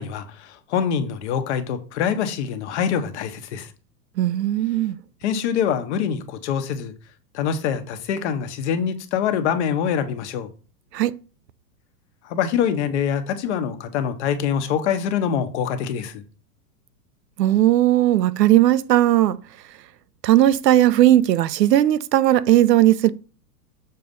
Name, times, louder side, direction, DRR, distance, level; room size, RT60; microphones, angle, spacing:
voice 1, 0.0-3.7 5.2-6.9 7.3-10.5 12.2-16.2, left 8 dB, 45° left, 1.1 m, -24 dB
voice 2, 4.2-5.0 10.9-11.1 17.4-19.4 20.2-23.1, right 13 dB, 85° right, 0.7 m, -17 dB
6.8 x 4.1 x 5.2 m
hypercardioid pair, 155°, 49 cm